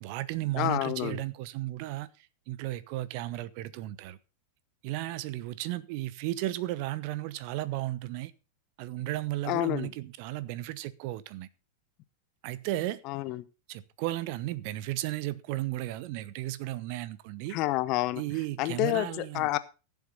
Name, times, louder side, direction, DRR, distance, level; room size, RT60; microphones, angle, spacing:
voice 1, 0.0-4.2 4.8-8.3 8.8-11.5 12.4-13.0 13.7-17.6 18.2-19.6, right 16 dB, 45° right, 0.9 m, -34 dB
voice 2, 0.6-1.2 9.4-9.9 13.1-13.4 17.5-18.2 18.6-19.6, left 17 dB, 40° left, 0.9 m, -29 dB
16.0 x 7.3 x 5.4 m
figure-of-eight pair, 90°, 0 cm